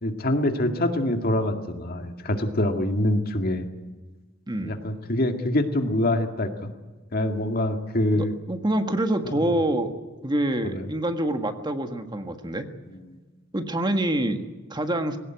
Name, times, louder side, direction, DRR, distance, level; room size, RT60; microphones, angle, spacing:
voice 1, 0.0-3.7 4.6-6.7 7.1-8.3 9.2-9.4 10.7-10.8 12.9-13.2, left 1 dB, 50° left, 5 dB, 2.1 m, -25 dB
voice 2, 4.5-4.8 8.1-9.9 10.2-12.7 13.5-15.2, right 1 dB, 20° right, 7 dB, 1.6 m, -26 dB
21.0 x 18.0 x 9.1 m, 1.3 s
head